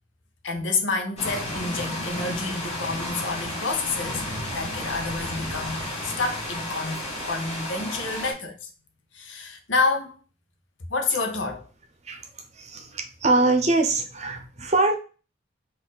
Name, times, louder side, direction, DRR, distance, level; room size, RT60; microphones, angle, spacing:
voice 1, 0.4-4.3 4.5-8.7 9.1-10.1 10.9-11.6, left 3 dB, 70° left, 0.9 m, -28 dB
sound 1, 1.2-8.3, left 1 dB, 30° left, 1.8 m, -32 dB
voice 2, 12.5-14.9, right 2 dB, 35° right, 0.8 m, -23 dB
4.1 x 2.6 x 4.1 m
head